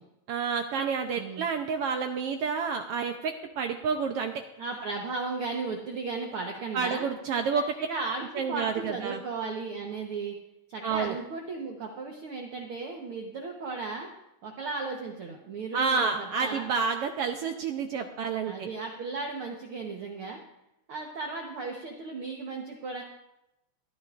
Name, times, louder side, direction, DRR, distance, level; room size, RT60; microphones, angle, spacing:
voice 1, 0.3-4.4 6.7-7.6 8.3-9.2 10.8-11.2 15.7-18.7, right 5 dB, 80° right, 5 dB, 1.3 m, -29 dB
voice 2, 1.2-1.5 4.6-7.1 7.5-10.4 10.7-14.1 14.4-16.7 18.4-20.4 20.9-23.0, right 4 dB, 55° right, 1 dB, 1.7 m, -35 dB
21.0 x 13.5 x 2.5 m, 0.87 s
omnidirectional pair, 3.5 m